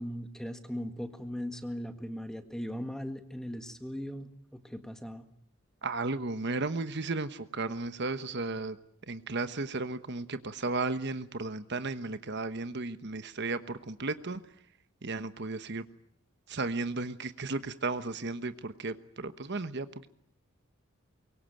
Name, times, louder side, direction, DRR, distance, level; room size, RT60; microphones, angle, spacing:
voice 1, 0.0-5.3, equal, 5° left, 8 dB, 1.7 m, -39 dB
voice 2, 5.8-8.8 9.0-14.5 15.0-15.8 16.5-20.1, right 3 dB, 55° right, 11 dB, 1.2 m, -34 dB
24.0 x 23.0 x 9.1 m, 0.67 s
head